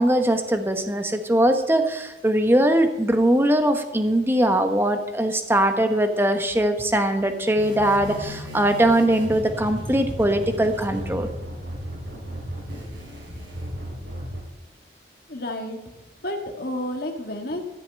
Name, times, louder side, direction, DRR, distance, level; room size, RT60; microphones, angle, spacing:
voice 1, 0.0-11.3, right 1 dB, 10° right, 7 dB, 1.1 m, -21 dB
sound 1, 7.6-14.4, equal, 80° right, 5.5 m, -35 dB
voice 2, 15.3-15.8 16.2-17.7, left 1 dB, 55° left, 4 dB, 1.8 m, -30 dB
13.5 x 6.8 x 8.8 m, 1.0 s
head